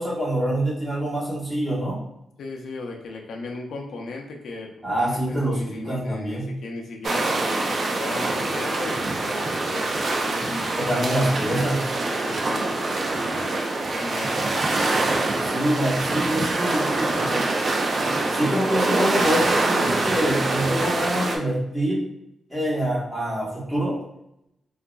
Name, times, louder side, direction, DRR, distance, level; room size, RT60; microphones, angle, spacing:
voice 1, 0.0-2.0 4.8-6.5 10.8-11.9 15.4-17.5 18.3-22.1 22.5-24.0, right 1 dB, 10° right, -7 dB, 1.2 m, -25 dB
voice 2, 2.4-11.6 12.0-13.6 13.9-15.3 15.9-16.0 18.2-18.8, left 3 dB, 80° left, 1 dB, 0.5 m, -37 dB
sound 1, 7.0-21.4, right 2 dB, 50° right, 0.5 m, -24 dB
3.7 x 2.4 x 2.3 m, 0.83 s
cardioid pair, 110°, 0 cm